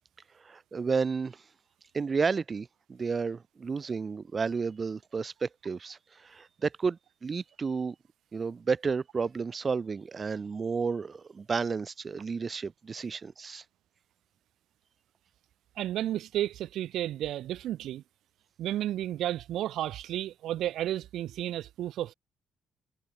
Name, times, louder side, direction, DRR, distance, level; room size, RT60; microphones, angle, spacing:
voice 1, 0.4-1.4 1.9-8.0 8.3-13.6, right 5 dB, 35° right, 1.8 m, -32 dB
voice 2, 15.8-18.0 18.6-22.1, right 12 dB, 80° right, 3.1 m, -32 dB
cardioid pair, 90°, 0 cm